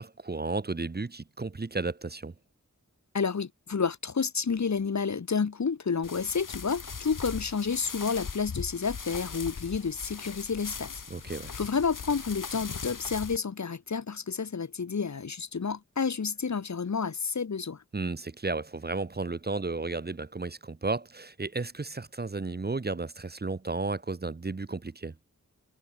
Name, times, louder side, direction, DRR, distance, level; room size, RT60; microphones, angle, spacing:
voice 1, 0.0-2.3 11.1-11.5 17.9-25.1, right 3 dB, 30° right, 0.8 m, -33 dB
voice 2, 3.1-11.0 11.5-17.8, left 5 dB, 60° left, 1.0 m, -30 dB
sound 1, 6.0-13.4, left 5 dB, 80° left, 1.5 m, -39 dB
wide cardioid pair, 50°, 32 cm